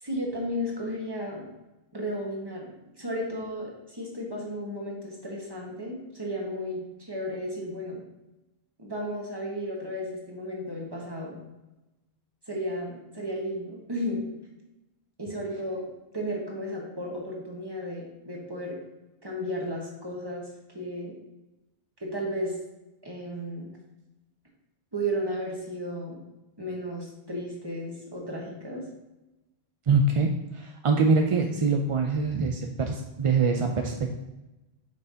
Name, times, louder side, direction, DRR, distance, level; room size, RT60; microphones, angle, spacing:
voice 1, 0.0-1.4 1.9-8.0 8.8-11.4 12.5-14.2 15.2-15.9 16.1-18.8 19.2-20.5 20.7-21.1 22.0-22.5 23.0-23.7 24.9-26.2 26.6-28.8, equal, 25° right, -2 dB, 1.5 m, -34 dB
voice 2, 29.9-34.1, right 4 dB, 45° right, 3 dB, 0.4 m, -24 dB
7.5 x 5.6 x 2.8 m, 1.0 s
omnidirectional pair, 1.1 m